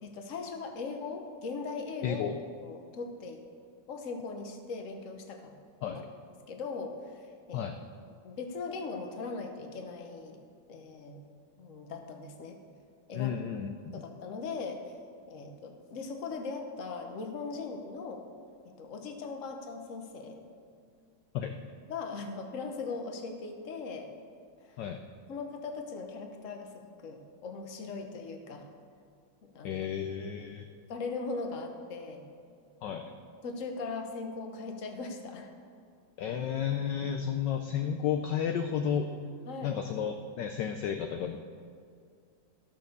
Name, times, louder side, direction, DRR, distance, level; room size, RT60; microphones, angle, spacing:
voice 1, 0.0-2.3 2.6-3.4 3.9-5.5 5.9-6.0 6.5-7.7 8.2-10.4 10.7-11.2 11.6-12.6 13.1-13.3 13.9-14.8 15.3-18.2 18.6-20.4 21.9-24.1 24.6-24.8 25.3-28.7 29.4-29.9 30.9-32.2 33.4-35.5 39.5-39.8, left 4 dB, 45° left, 4 dB, 1.3 m, -39 dB
voice 2, 2.0-2.4 5.8-6.0 7.5-7.8 13.1-14.0 21.3-21.6 24.8-25.0 29.6-30.7 32.8-33.0 36.2-39.1 39.6-41.4, left 8 dB, 70° left, 6 dB, 1.2 m, -32 dB
14.0 x 6.6 x 6.7 m, 2.3 s
omnidirectional pair, 2.2 m